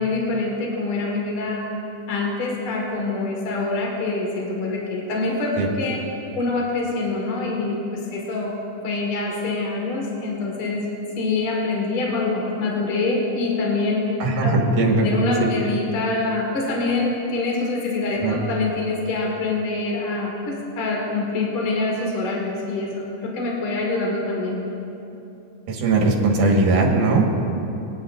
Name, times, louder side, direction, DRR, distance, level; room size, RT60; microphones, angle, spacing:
voice 1, 0.0-1.6 2.1-6.0 6.4-8.5 8.8-10.8 11.2-14.1 14.4-14.5 15.0-24.5, left 3 dB, 50° left, -2 dB, 2.2 m, -25 dB
voice 2, 14.2-15.1 15.4-15.5 18.2-18.4 25.7-27.3, right 3 dB, 75° right, 1 dB, 2.9 m, -19 dB
26.0 x 9.9 x 2.5 m, 2.8 s
omnidirectional pair, 3.7 m